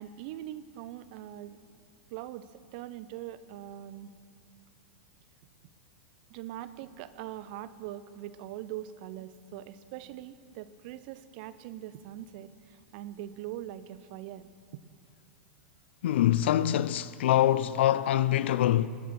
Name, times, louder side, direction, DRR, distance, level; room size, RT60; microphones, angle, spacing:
voice 1, 0.0-1.6 2.1-4.2 6.3-14.8, right 12 dB, 55° right, 0.7 m, -42 dB
voice 2, 16.0-18.9, left 12 dB, 70° left, 0.5 m, -24 dB
21.0 x 9.2 x 6.1 m
hypercardioid pair, 105°, 6 cm